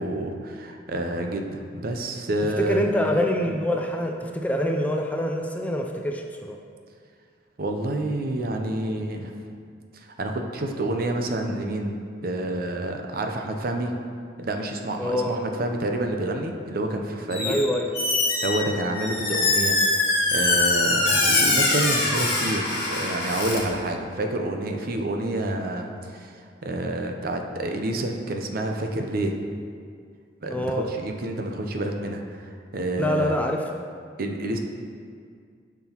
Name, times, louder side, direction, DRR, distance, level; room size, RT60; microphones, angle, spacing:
voice 1, 0.0-2.8 3.5-3.6 7.6-9.3 9.9-12.0 12.2-13.9 14.4-17.6 18.4-29.4 30.4-30.7 31.0-33.4 34.2-34.6, right 1 dB, 55° right, 4 dB, 0.7 m, -28 dB
voice 2, 2.6-6.6 15.0-15.4 17.4-17.9 30.5-30.9 33.0-33.6, left 1 dB, 10° left, 2 dB, 0.4 m, -25 dB
Squeak, 17.3-17.7 17.9-23.6, left 2 dB, 35° left, 1.9 m, -23 dB
10.5 x 6.0 x 3.0 m, 2.2 s
head